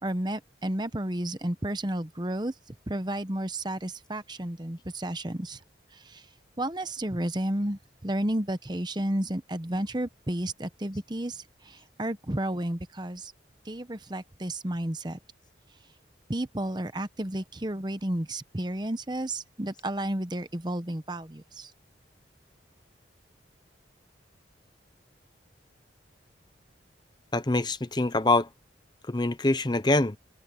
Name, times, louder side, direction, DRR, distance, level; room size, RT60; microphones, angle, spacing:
voice 1, 0.0-2.5 2.9-5.6 5.9-6.3 6.6-13.3 13.6-15.2 16.3-21.7, right 1 dB, 25° right, 1.0 m, -32 dB
voice 2, 27.3-28.5 29.1-30.2, left 2 dB, 25° left, 0.7 m, -24 dB
head